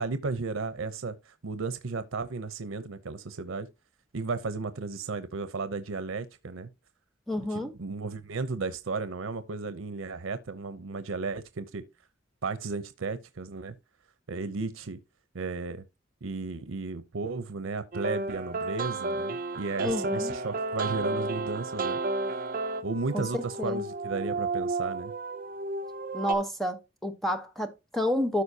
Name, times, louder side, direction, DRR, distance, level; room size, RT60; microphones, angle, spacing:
voice 1, 0.0-3.7 4.1-6.7 7.4-11.8 12.4-13.8 14.3-15.0 15.3-15.8 16.2-22.0 22.8-25.1, right 4 dB, 90° right, 0.7 m, -34 dB
voice 2, 7.3-7.7 19.8-20.4 23.1-23.8 26.1-28.4, left 1 dB, ahead, 1.0 m, -30 dB
sound 1, 17.9-26.3, right 3 dB, 45° right, 0.7 m, -32 dB
13.0 x 4.7 x 2.8 m
head